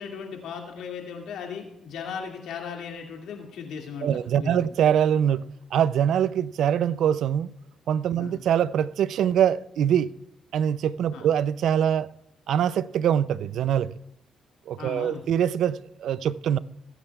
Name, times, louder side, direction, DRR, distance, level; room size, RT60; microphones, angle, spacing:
voice 1, 0.0-4.7 8.2-8.4 11.1-11.3 14.8-15.2, left 6 dB, 80° left, 2.1 m, -37 dB
voice 2, 4.0-7.5 7.9-10.1 10.5-12.1 12.5-13.9 14.7-16.6, right 9 dB, 75° right, 0.4 m, -23 dB
22.0 x 8.9 x 2.3 m
cardioid pair, 90°, 0 cm